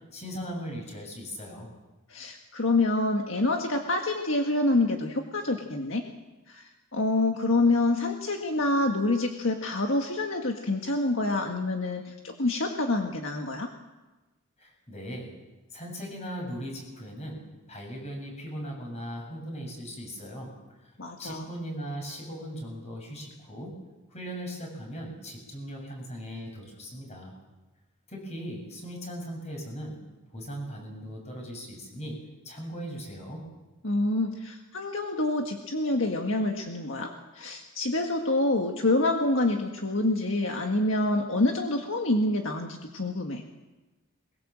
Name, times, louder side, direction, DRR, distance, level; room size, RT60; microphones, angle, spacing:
voice 1, 0.1-1.7 14.6-15.4 15.7-20.6 21.2-23.8 24.1-27.3 28.1-30.0 30.3-33.4, equal, 30° left, 1 dB, 7.6 m, -38 dB
voice 2, 2.1-6.0 6.5-6.6 6.9-13.7 21.0-21.4 33.8-43.4, left 2 dB, 70° left, 3 dB, 1.8 m, -27 dB
23.0 x 22.0 x 7.7 m, 1.1 s
head